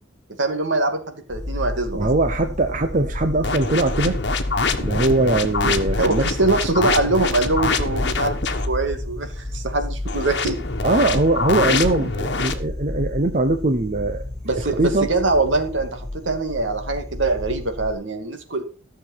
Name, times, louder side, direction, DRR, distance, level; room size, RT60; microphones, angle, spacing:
voice 1, 0.4-2.1 6.0-10.6 14.4-18.6, right 2 dB, 75° right, 6 dB, 2.4 m, -23 dB
sound 1, 1.3-17.9, left 1 dB, ahead, 4.5 m, -31 dB
voice 2, 1.9-4.2 4.7-6.2 10.8-14.2 14.5-15.1, right 2 dB, 40° right, 7 dB, 0.9 m, -21 dB
sound 2, 3.4-8.7 10.0-12.5, left 4 dB, 60° left, 1.5 m, -25 dB
14.0 x 6.9 x 5.9 m, 0.36 s
head